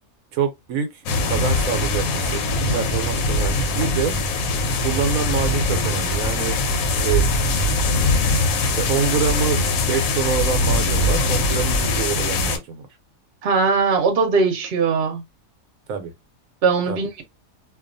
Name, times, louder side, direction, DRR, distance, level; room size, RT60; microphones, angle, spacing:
voice 1, 0.3-4.1 4.8-6.6 7.0-7.3 8.6-12.9 15.9-16.1 16.9-17.0, right 6 dB, 80° right, 1.1 m, -26 dB
sound 1, 1.1-12.6, left 2 dB, 85° left, 1.0 m, -21 dB
voice 2, 13.4-15.2 16.6-17.2, right 4 dB, 55° right, 0.9 m, -20 dB
2.4 x 2.3 x 2.5 m
omnidirectional pair, 1.4 m